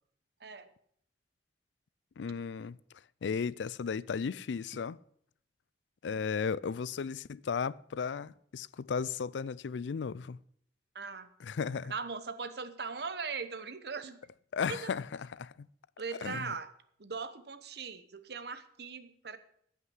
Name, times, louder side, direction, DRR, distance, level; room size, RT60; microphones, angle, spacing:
voice 1, 2.2-2.8 3.2-5.0 6.0-10.4 11.4-11.9 14.5-15.5 16.2-16.5, left 6 dB, 90° left, 0.4 m, -35 dB
voice 2, 10.9-11.3 11.9-14.2 14.7-14.9 16.0-16.7 17.0-19.4, right 5 dB, 65° right, 1.0 m, -39 dB
15.0 x 5.8 x 8.0 m
head